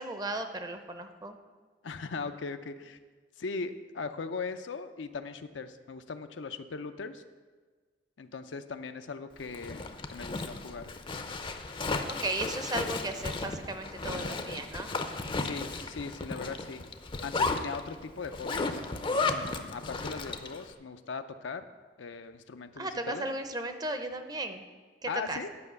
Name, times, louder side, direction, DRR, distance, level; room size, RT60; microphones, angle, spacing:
voice 1, 0.0-1.4 12.1-14.9 22.8-24.6 25.0-25.4, right 2 dB, 20° right, 7 dB, 0.6 m, -35 dB
voice 2, 1.8-3.0 3.4-7.2 8.2-10.9 15.4-16.9 17.2-18.8 19.2-21.6 22.0-23.3 25.1-25.5, left 4 dB, 75° left, 9 dB, 0.6 m, -39 dB
Zipper (clothing), 9.4-20.6, left 3 dB, 30° left, 0.5 m, -34 dB
9.8 x 5.3 x 6.8 m, 1.4 s
head